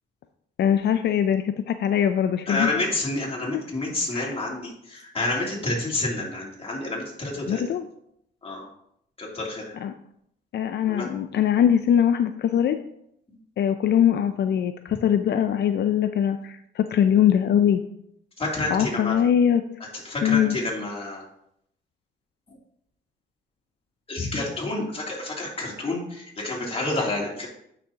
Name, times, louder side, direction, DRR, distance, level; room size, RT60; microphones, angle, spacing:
voice 1, 0.6-2.7 4.1-4.4 7.5-7.9 9.8-9.9 10.5-12.8 13.6-17.8 18.7-19.6 20.2-20.5, left 9 dB, 60° left, 9 dB, 0.5 m, -22 dB
voice 2, 2.5-7.6 8.4-8.7 9.2-9.8 10.8-11.1 18.4-19.2 20.0-21.2 24.1-27.5, left 2 dB, 30° left, -3 dB, 2.9 m, -29 dB
9.3 x 6.2 x 2.9 m, 0.74 s
cardioid pair, 90°, 20 cm